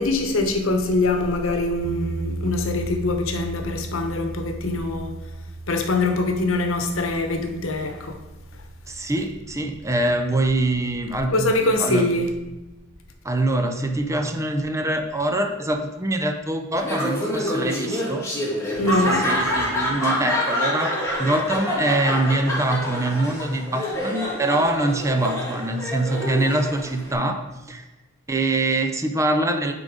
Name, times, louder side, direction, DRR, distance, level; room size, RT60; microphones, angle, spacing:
voice 1, 0.0-5.2 5.7-8.2 11.3-12.4 18.8-19.3, left 2 dB, 70° left, 1.0 m, -23 dB
sound 1, 1.8-11.9, right 2 dB, 60° right, 0.7 m, -37 dB
voice 2, 8.9-11.5 11.8-12.1 13.2-18.3 18.8-20.9 21.2-27.8 28.3-29.7, right 2 dB, 15° right, 0.5 m, -24 dB
Laughter, 16.8-27.1, equal, 15° left, 2.5 m, -27 dB
9.5 x 3.9 x 5.1 m
head